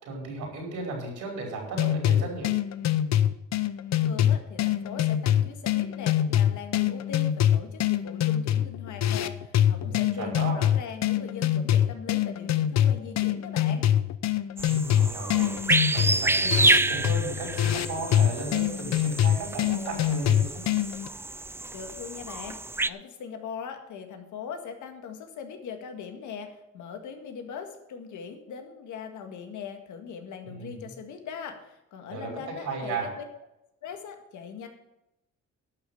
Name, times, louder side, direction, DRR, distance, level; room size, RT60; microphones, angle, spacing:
voice 1, 0.0-2.5 9.7-10.6 14.6-15.6 15.9-20.6 30.4-30.8 32.1-32.3 32.6-33.1, right 3 dB, 80° right, 0 dB, 5.1 m, -35 dB
sound 1, 1.8-21.1, left 11 dB, 60° left, 0.7 m, -25 dB
voice 2, 4.0-13.8 21.7-22.6 22.9-33.2 33.8-34.7, left 7 dB, 75° left, 6 dB, 1.8 m, -40 dB
sound 2, 14.6-22.9, right 2 dB, 10° right, 0.4 m, -28 dB
12.0 x 6.4 x 7.8 m, 0.91 s
cardioid pair, 90°, 30 cm